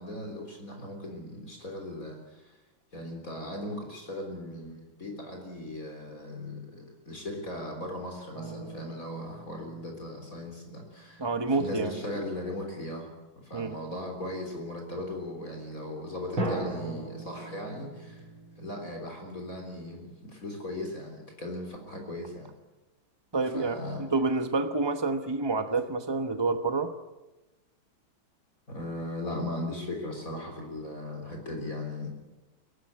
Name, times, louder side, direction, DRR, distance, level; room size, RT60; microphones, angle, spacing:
voice 1, 0.0-2.5 2.9-11.2 11.6-13.1 13.4-18.2 18.6-22.5 23.5-24.1 28.7-32.1, left 1 dB, 40° left, 2 dB, 4.1 m, -38 dB
sound 1, 8.3-11.4 16.4-20.0, right 2 dB, 85° right, 4.2 m, -39 dB
voice 2, 11.2-12.0 13.5-13.8 23.3-26.9, right 3 dB, 30° right, 7 dB, 0.5 m, -28 dB
23.5 x 17.5 x 9.7 m, 1.1 s
omnidirectional pair, 2.2 m